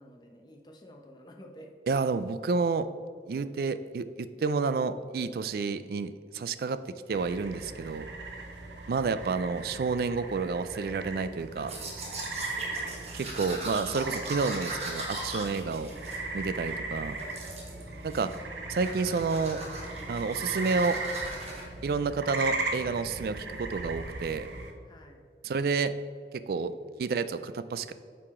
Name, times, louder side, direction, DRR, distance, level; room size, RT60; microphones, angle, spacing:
voice 1, 0.0-1.7 8.6-8.9 12.2-13.0 17.7-18.3 21.9-22.1 24.8-25.2 26.8-27.0, equal, 25° left, 2 dB, 0.7 m, -53 dB
voice 2, 1.9-2.9 3.3-6.8 7.1-8.1 8.9-11.7 13.1-15.9 16.3-17.2 18.0-18.3 18.7-19.6 20.1-21.0 21.8-24.5 25.4-25.9 26.5-26.7 27.0-27.9, right 4 dB, 55° right, 13 dB, 0.3 m, -30 dB
sound 1, 7.1-24.7, right 3 dB, 80° right, 0.8 m, -38 dB
Domestic sounds home sounds, 11.6-16.8 17.2-17.8 18.1-18.5 18.7-21.6, right 2 dB, 35° right, 1.2 m, -39 dB
8.6 x 4.8 x 3.6 m, 2.2 s
head